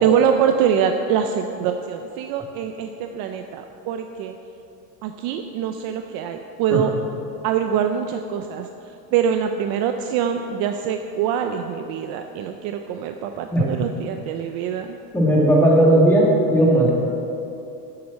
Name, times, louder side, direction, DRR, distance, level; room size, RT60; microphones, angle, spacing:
voice 1, 0.0-4.4 5.0-6.9 7.4-8.7 9.1-15.0, right 8 dB, 45° right, 6 dB, 0.5 m, -24 dB
voice 2, 15.1-16.2 16.5-16.9, right 1 dB, 5° left, -5 dB, 1.9 m, -15 dB
9.8 x 7.8 x 7.1 m, 2.8 s
cardioid pair, 170°, 50 cm